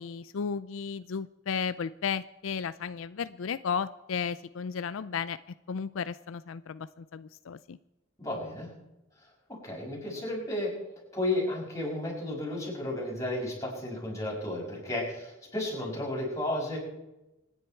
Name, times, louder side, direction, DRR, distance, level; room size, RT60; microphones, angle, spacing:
voice 1, 0.0-5.4 5.7-7.8, left 6 dB, 75° left, 15 dB, 0.4 m, -34 dB
voice 2, 8.2-8.7 9.5-10.7 11.1-16.8, left 1 dB, 15° left, -3 dB, 6.3 m, -33 dB
26.0 x 10.0 x 4.5 m, 0.97 s
head